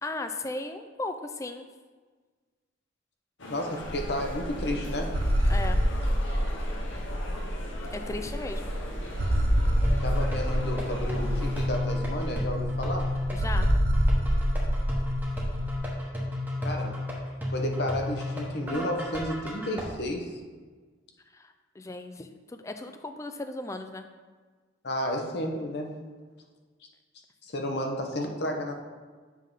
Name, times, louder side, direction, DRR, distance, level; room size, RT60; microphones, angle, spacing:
voice 1, 0.0-1.7 5.5-5.8 7.9-8.7 13.3-13.7 21.3-24.1, left 2 dB, 15° left, 7 dB, 0.3 m, -36 dB
sound 1, 3.4-11.7, left 1 dB, 80° left, 1.0 m, -41 dB
voice 2, 3.5-5.1 10.0-13.1 16.6-17.0 17.5-20.4 24.8-26.0 27.4-28.7, left 1 dB, 60° left, 2 dB, 0.9 m, -32 dB
sound 2, 3.8-15.8, equal, 50° right, 0.7 m, -27 dB
sound 3, 9.8-19.8, left 1 dB, 10° right, 1.1 m, -32 dB
7.4 x 3.6 x 5.4 m, 1.4 s
head